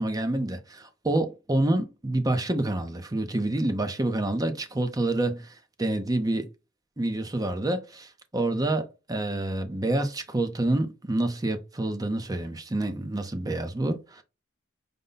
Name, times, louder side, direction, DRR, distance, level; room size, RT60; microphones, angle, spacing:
voice 1, 0.0-6.5 7.0-14.2, right 1 dB, 20° right, 0.6 m, -28 dB
5.2 x 2.1 x 3.9 m
head